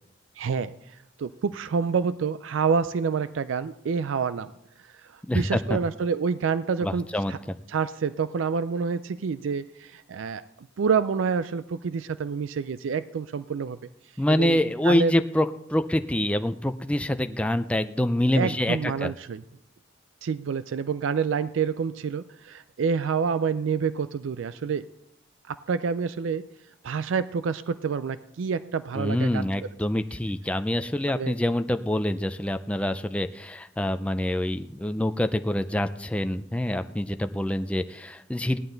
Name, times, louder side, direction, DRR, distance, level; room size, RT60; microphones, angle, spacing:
voice 1, 0.4-4.5 4.8-7.4 7.7-10.4 10.8-13.8 14.3-15.1 18.3-19.4 20.2-24.9 25.5-26.5 26.8-29.4 31.1-31.3, right 6 dB, 80° right, 14 dB, 0.4 m, -28 dB
voice 2, 5.3-5.8 6.8-7.5 14.2-19.1 28.9-38.6, left 1 dB, 5° left, 9 dB, 0.4 m, -26 dB
16.5 x 11.0 x 3.9 m, 0.81 s
head